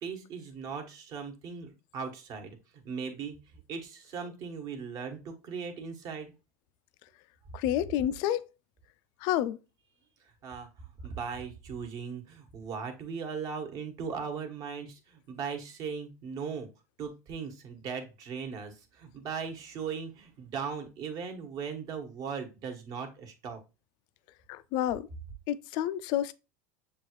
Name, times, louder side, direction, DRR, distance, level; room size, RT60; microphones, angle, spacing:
voice 1, 0.0-2.6 2.8-3.4 3.7-6.3 10.4-16.7 17.0-23.6, right 6 dB, 45° right, 1.2 m, -38 dB
voice 2, 7.5-8.5 9.2-9.6 24.5-25.1 25.5-26.3, left 12 dB, 60° left, 0.4 m, -29 dB
7.1 x 2.4 x 3.0 m
supercardioid pair, 120°, 8 cm